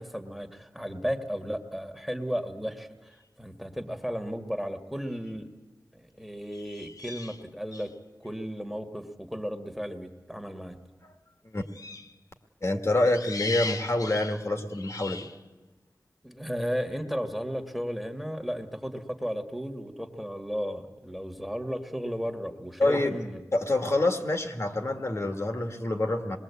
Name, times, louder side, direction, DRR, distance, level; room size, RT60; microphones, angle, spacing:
voice 1, 0.0-5.5 5.9-7.9 8.2-10.8 16.2-23.4, equal, ahead, 6 dB, 1.8 m, -34 dB
sound 1, 5.1-5.3 6.5-7.9 11.7-12.2 13.0-15.4, left 3 dB, 70° left, 0.9 m, -38 dB
voice 2, 12.6-15.3 22.8-23.2 23.5-26.4, left 2 dB, 50° left, 5 dB, 1.9 m, -27 dB
26.0 x 21.0 x 8.4 m, 1.2 s
wide cardioid pair, 65°, 6 cm